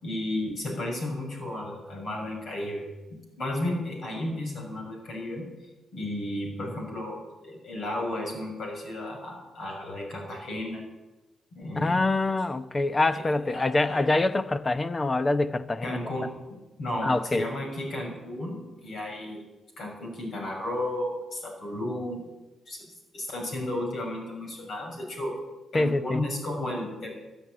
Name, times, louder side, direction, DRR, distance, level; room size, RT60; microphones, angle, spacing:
voice 1, 0.0-5.5 5.9-10.8 11.5-12.0 13.1-14.0 15.8-19.4 19.8-22.2 22.7-22.8 23.1-25.4 25.7-27.1, left 1 dB, 65° left, 6.9 m, -33 dB
voice 2, 11.8-16.0 17.0-17.5 25.7-26.2, left 2 dB, 30° left, 0.9 m, -25 dB
13.5 x 9.8 x 9.9 m
supercardioid pair, 60°, 0 cm